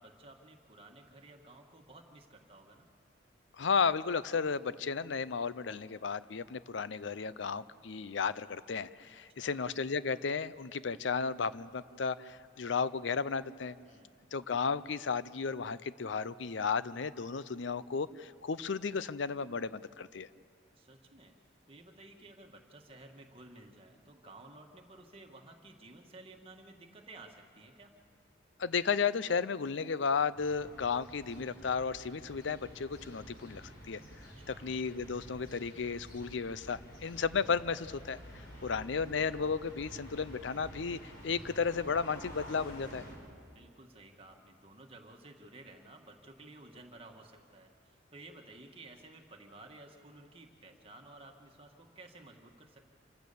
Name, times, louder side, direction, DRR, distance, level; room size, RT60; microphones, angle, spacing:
voice 1, 0.0-2.9 9.4-9.6 13.9-14.3 20.8-21.3 21.7-27.9 34.4-34.7 38.5-38.9 43.5-52.8, right 2 dB, 30° right, 2 dB, 1.8 m, -54 dB
voice 2, 3.6-13.8 14.3-20.3 28.6-34.0 34.5-38.2 38.6-43.0, left 5 dB, 75° left, 16 dB, 0.6 m, -34 dB
sound 1, 30.3-43.1, equal, 55° left, 5.6 m, -50 dB
27.0 x 15.5 x 7.0 m, 2.3 s
head